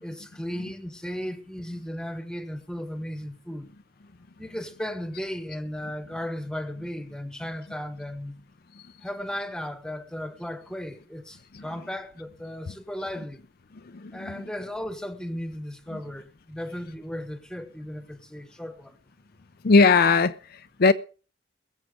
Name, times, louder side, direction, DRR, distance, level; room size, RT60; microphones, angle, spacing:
voice 1, 0.0-3.7 4.4-8.4 9.0-13.4 14.1-19.0, equal, 5° left, 1.2 m, -35 dB
voice 2, 13.9-14.4 19.6-20.9, left 4 dB, 55° left, 0.5 m, -20 dB
21.0 x 7.4 x 5.0 m
head